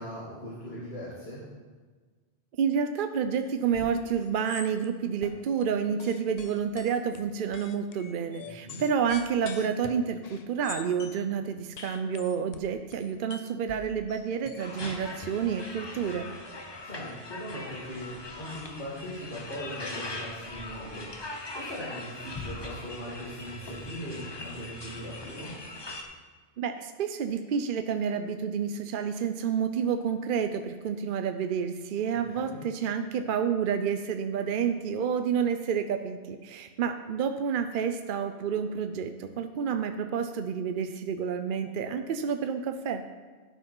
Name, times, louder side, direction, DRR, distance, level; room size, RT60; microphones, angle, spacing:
voice 1, 0.0-1.4 8.4-8.8 16.8-21.1 21.5-25.5 32.3-32.6, equal, 75° left, -11 dB, 2.9 m, -40 dB
voice 2, 2.6-16.3 26.6-43.0, right 7 dB, 60° right, 8 dB, 0.7 m, -29 dB
sound 1, 3.7-4.0 4.2-4.9 5.2-5.6 6.0-11.2 11.8-15.3, left 7 dB, 50° left, 0.5 m, -45 dB
sound 2, 14.6-26.0, left 2 dB, 25° left, 0.8 m, -41 dB
12.0 x 4.7 x 5.3 m, 1.4 s
omnidirectional pair, 1.1 m